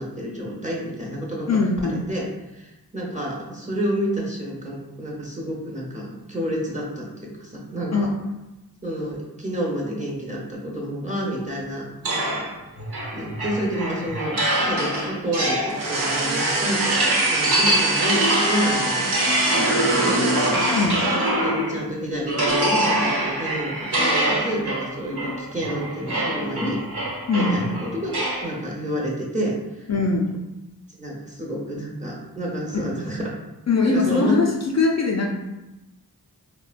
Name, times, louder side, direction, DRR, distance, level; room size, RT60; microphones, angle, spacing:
voice 1, 0.0-1.5 1.8-8.1 8.8-12.4 13.1-20.2 20.5-20.8 21.4-26.8 27.4-28.1 28.4-29.9 31.0-33.3 33.8-34.4, equal, 20° right, -3 dB, 0.7 m, -29 dB
voice 2, 1.5-2.0 7.9-8.1 20.7-21.0 27.3-27.6 29.9-30.3 32.7-32.8 33.7-34.5 34.7-35.3, left 3 dB, 45° left, -1 dB, 0.4 m, -21 dB
sound 1, 12.0-21.8 22.3-28.5, right 1 dB, 90° right, 1.0 m, -24 dB
sound 2, 15.7-21.3, right 2 dB, 55° right, 0.5 m, -26 dB
3.7 x 2.1 x 2.4 m, 0.99 s
wide cardioid pair, 65°, 38 cm